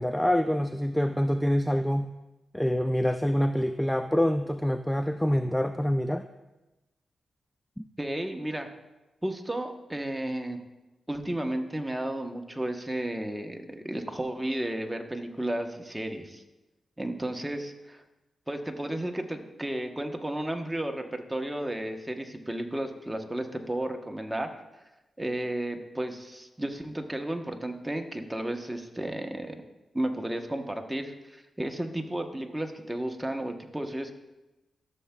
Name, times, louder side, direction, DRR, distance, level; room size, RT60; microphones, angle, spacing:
voice 1, 0.0-2.1 2.5-6.3 7.8-7.9, equal, 5° left, 8 dB, 0.3 m, -26 dB
voice 2, 8.0-8.7 9.2-10.6 11.1-16.4 17.0-18.0 18.5-24.6 25.2-29.6 29.9-34.1, right 1 dB, 10° right, 4 dB, 0.9 m, -33 dB
13.5 x 6.9 x 2.2 m, 1.0 s
cardioid pair, 80°, 0 cm